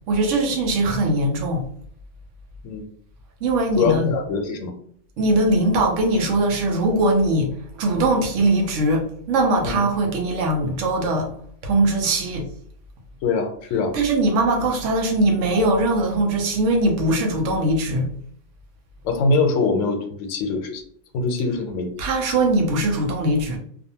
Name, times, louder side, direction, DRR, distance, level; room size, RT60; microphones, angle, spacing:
voice 1, 0.1-1.6 3.4-4.1 5.2-11.3 11.6-12.5 13.9-18.1 22.0-23.6, right 2 dB, 75° right, 2 dB, 1.0 m, -21 dB
voice 2, 3.8-4.7 9.6-9.8 13.2-14.0 19.0-20.8 21.1-21.9, left 4 dB, 85° left, 5 dB, 1.0 m, -23 dB
2.5 x 2.5 x 2.7 m, 0.62 s
omnidirectional pair, 1.3 m